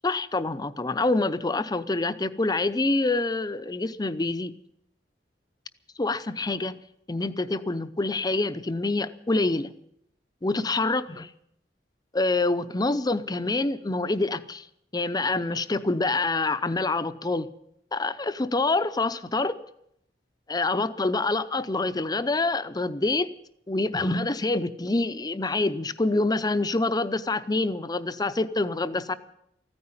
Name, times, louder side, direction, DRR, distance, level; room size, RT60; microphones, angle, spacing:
voice 1, 0.0-4.5 6.0-6.8 7.1-9.7 10.4-11.3 12.1-14.6 14.9-17.5 17.9-19.6 20.5-23.3 23.7-29.1, left 2 dB, 25° left, 12 dB, 0.6 m, -26 dB
15.0 x 9.7 x 9.4 m, 0.74 s
head